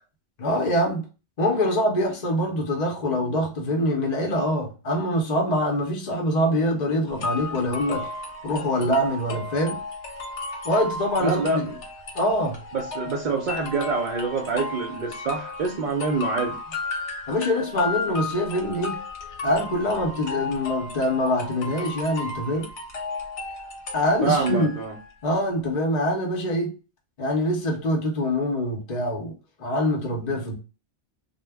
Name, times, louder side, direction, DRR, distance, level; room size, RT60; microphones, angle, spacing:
voice 1, 0.4-1.0 1.4-8.1 8.4-9.8 10.6-11.7 12.1-12.6 17.3-19.0 19.4-22.7 23.9-24.7 25.2-26.7 27.2-29.3 29.6-30.5, left 1 dB, 45° left, 0.7 m, -24 dB
sound 1, 7.2-25.1, left 3 dB, 90° left, 1.0 m, -34 dB
voice 2, 11.2-11.8 12.7-16.6 24.2-24.9, right 3 dB, 55° right, 0.6 m, -26 dB
2.1 x 2.0 x 3.3 m
omnidirectional pair, 1.1 m